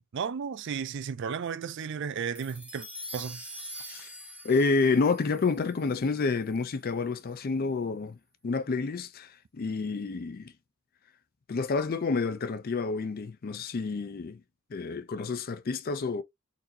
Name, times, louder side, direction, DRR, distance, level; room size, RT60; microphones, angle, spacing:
voice 1, 0.0-2.9 3.1-3.4, right 6 dB, 55° right, 0.4 m, -34 dB
sound 1, 2.3-6.9, equal, 5° right, 0.9 m, -45 dB
voice 2, 3.8-4.1 4.4-8.2 8.4-10.5 11.5-14.4 14.7-16.2, left 4 dB, 45° left, 0.4 m, -29 dB
4.0 x 2.6 x 2.7 m
head